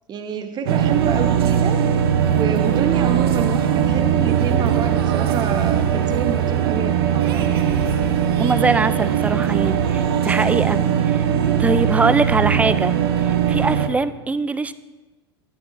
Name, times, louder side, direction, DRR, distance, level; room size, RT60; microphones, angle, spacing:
voice 1, 0.1-1.8 2.3-7.5 10.3-10.5, right 7 dB, 30° right, 8 dB, 0.9 m, -28 dB
sound 1, 0.7-13.9, right 8 dB, 70° right, 0.7 m, -20 dB
voice 2, 8.4-10.8 11.1-11.2 11.6-12.9 13.2-14.7, right 3 dB, 10° right, 14 dB, 0.3 m, -22 dB
11.5 x 9.4 x 2.5 m, 1.2 s
hypercardioid pair, 85°, 13 cm